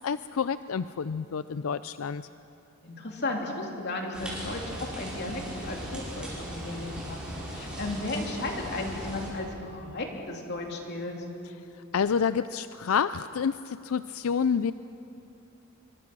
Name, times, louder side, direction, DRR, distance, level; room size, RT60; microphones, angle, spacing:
voice 1, 0.0-2.2 11.9-14.7, left 6 dB, 90° left, 13 dB, 0.4 m, -28 dB
voice 2, 2.8-7.2 7.5-11.1, left 2 dB, 55° left, 1 dB, 3.2 m, -35 dB
sound 1, 4.1-9.3, equal, 5° right, 6.1 m, -38 dB
26.0 x 24.0 x 6.1 m, 2.8 s
head